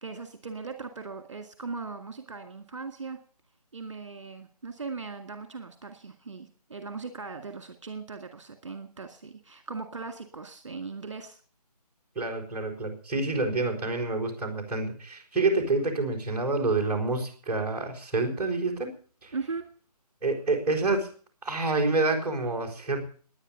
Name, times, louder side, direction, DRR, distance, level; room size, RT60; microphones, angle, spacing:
voice 1, 0.0-3.2 3.7-11.4 19.3-19.6, right 4 dB, 50° right, 8 dB, 2.0 m, -39 dB
voice 2, 12.2-18.9 19.2-19.3 20.2-21.1 21.4-23.0, right 3 dB, 5° right, -4 dB, 4.0 m, -28 dB
18.5 x 10.5 x 6.8 m, 0.42 s
figure-of-eight pair, 150°, 21 cm